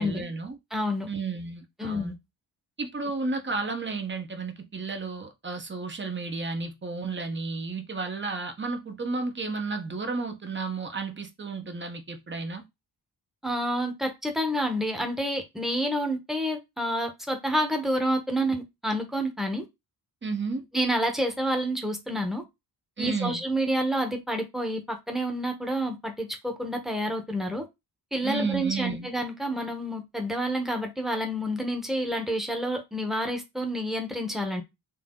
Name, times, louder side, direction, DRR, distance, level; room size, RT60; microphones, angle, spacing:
voice 1, 0.0-0.6 1.1-2.1 2.8-12.6 20.2-20.6 23.0-23.4 28.2-29.1, right 4 dB, 30° right, 1.0 m, -32 dB
voice 2, 0.7-1.1 1.8-2.2 13.4-19.7 20.7-22.4 23.0-27.6 28.1-34.6, equal, ahead, 1.1 m, -29 dB
4.3 x 2.7 x 3.8 m
cardioid pair, 105°, 39 cm